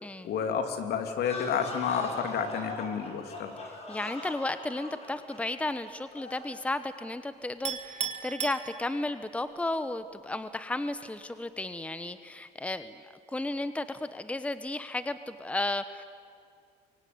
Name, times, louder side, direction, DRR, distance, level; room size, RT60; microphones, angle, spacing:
voice 1, 0.2-3.5, left 7 dB, 70° left, 6 dB, 3.0 m, -30 dB
sound 1, 1.1-6.6, left 2 dB, 40° left, 7.3 m, -41 dB
voice 2, 3.9-13.0 13.3-16.0, left 2 dB, 10° left, 12 dB, 1.0 m, -34 dB
Chink clink, 7.7-9.3, right 7 dB, 40° right, 2.7 m, -36 dB
24.5 x 24.0 x 9.6 m, 2.3 s
cardioid pair, 110°, 17 cm